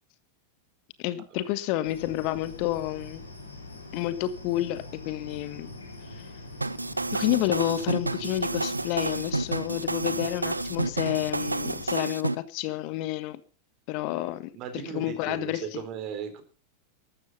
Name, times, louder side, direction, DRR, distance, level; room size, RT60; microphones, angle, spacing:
voice 1, 1.0-3.2 3.9-5.7 6.1-6.2 7.1-13.4 13.9-14.5 14.9-15.8, left 14 dB, 45° left, 14 dB, 1.4 m, -30 dB
sound 1, 1.8-12.0, left 2 dB, 80° left, 4.0 m, -43 dB
sound 2, 6.6-12.4, right 2 dB, 80° right, 0.6 m, -30 dB
voice 2, 14.5-16.4, right 8 dB, 40° right, 8 dB, 4.0 m, -36 dB
13.5 x 12.5 x 5.6 m, 0.38 s
figure-of-eight pair, 90°, 0 cm